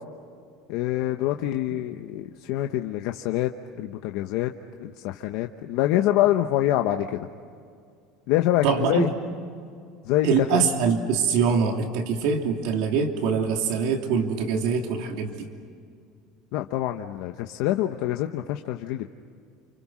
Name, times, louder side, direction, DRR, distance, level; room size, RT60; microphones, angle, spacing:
voice 1, 0.7-3.5 3.8-4.5 4.8-7.3 8.3-9.1 10.0-10.6 16.5-19.1, left 13 dB, 65° left, 5 dB, 1.0 m, -25 dB
voice 2, 8.6-9.1 10.2-15.5, right 5 dB, 65° right, 3 dB, 2.8 m, -24 dB
29.5 x 29.5 x 6.3 m, 2.3 s
cardioid pair, 170°, 0 cm